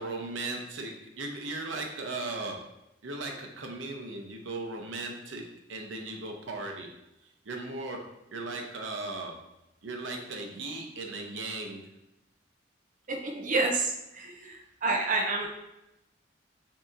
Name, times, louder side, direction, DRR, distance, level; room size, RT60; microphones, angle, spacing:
voice 1, 0.0-2.7 3.0-6.9 7.5-9.4 9.8-11.8, right 2 dB, 90° right, 2 dB, 0.7 m, -37 dB
voice 2, 13.1-15.5, right 3 dB, 45° right, 1 dB, 0.6 m, -29 dB
7.3 x 2.8 x 2.6 m, 0.90 s
head